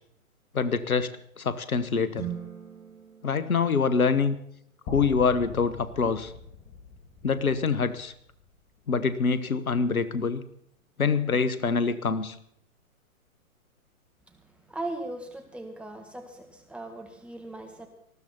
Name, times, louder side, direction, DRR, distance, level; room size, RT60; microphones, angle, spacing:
voice 1, 0.5-1.1 1.4-2.3 3.2-4.4 4.9-6.3 7.2-8.1 8.9-10.4 11.0-12.4, left 5 dB, 75° left, 14 dB, 1.4 m, -25 dB
sound 1, 2.1-4.6, right 9 dB, 25° right, 5.7 m, -41 dB
sound 2, 4.9-8.9, left 4 dB, 25° left, 2.8 m, -43 dB
voice 2, 14.7-17.9, right 2 dB, 5° right, 3 dB, 1.6 m, -38 dB
19.5 x 14.5 x 4.3 m, 0.68 s
figure-of-eight pair, 125°, 43 cm